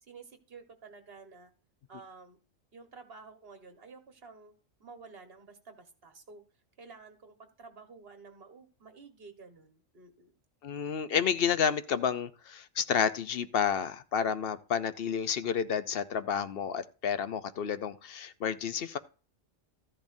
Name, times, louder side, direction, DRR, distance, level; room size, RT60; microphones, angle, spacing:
voice 1, 0.0-1.5 1.9-2.4 2.7-6.4 6.8-10.3, right 4 dB, 50° right, 1.7 m, -51 dB
voice 2, 10.6-19.0, left 7 dB, 55° left, 0.7 m, -30 dB
13.5 x 10.5 x 2.6 m
omnidirectional pair, 1.4 m